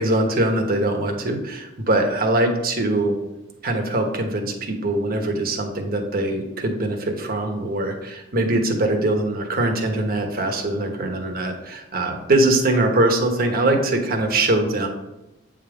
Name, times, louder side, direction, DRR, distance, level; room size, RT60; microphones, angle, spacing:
voice 1, 0.0-3.2 3.6-14.9, right 2 dB, 50° right, 3 dB, 1.1 m, -22 dB
8.6 x 3.6 x 5.0 m, 0.96 s
head